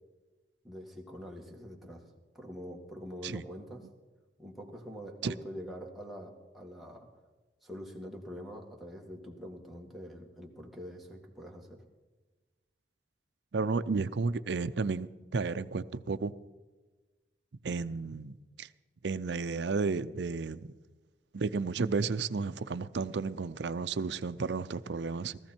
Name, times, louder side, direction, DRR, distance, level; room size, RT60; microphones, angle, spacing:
voice 1, 0.6-3.9 4.4-7.1 7.6-11.8, equal, ahead, -1 dB, 1.9 m, -45 dB
voice 2, 13.5-16.3 17.6-18.7 19.0-20.7 21.3-25.4, right 4 dB, 75° right, 13 dB, 0.5 m, -32 dB
18.0 x 14.5 x 4.5 m, 1.2 s
head